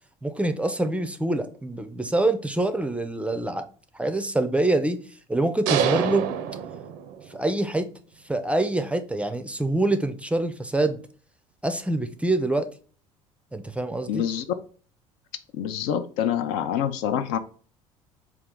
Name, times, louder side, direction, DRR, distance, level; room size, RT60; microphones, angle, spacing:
voice 1, 0.2-3.7 3.9-5.0 5.3-6.3 7.3-7.9 8.3-11.0 11.6-12.7 13.5-14.2, right 2 dB, 5° right, 0.4 m, -25 dB
sound 1, 5.7-7.5, right 9 dB, 65° right, 0.5 m, -26 dB
voice 2, 14.1-14.4 15.5-17.4, left 9 dB, 65° left, 0.4 m, -26 dB
3.7 x 2.4 x 3.5 m
hypercardioid pair, 65°, 17 cm